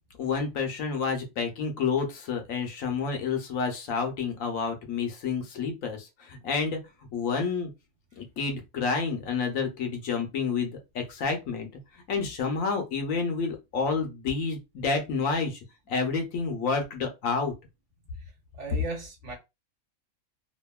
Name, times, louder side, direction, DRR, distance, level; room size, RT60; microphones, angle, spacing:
voice 1, 0.2-6.8 7.1-7.7 8.2-11.7 12.1-15.6 15.9-17.5, left 5 dB, 70° left, 1.0 m, -29 dB
voice 2, 18.5-19.3, right 3 dB, 60° right, 1.2 m, -36 dB
2.8 x 2.5 x 2.2 m
omnidirectional pair, 1.5 m